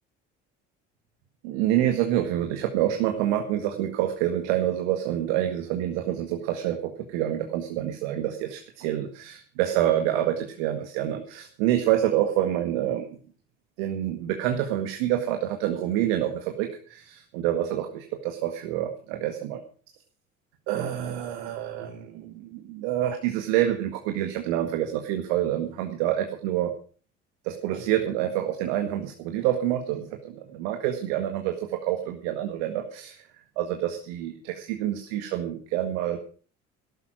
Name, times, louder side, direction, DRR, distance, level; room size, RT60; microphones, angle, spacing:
voice 1, 1.4-13.2 13.8-19.6 20.7-26.7 27.4-33.2 33.5-36.2, right 12 dB, 75° right, 5 dB, 1.8 m, -27 dB
14.0 x 12.0 x 6.1 m, 0.41 s
hypercardioid pair, 60°, 36 cm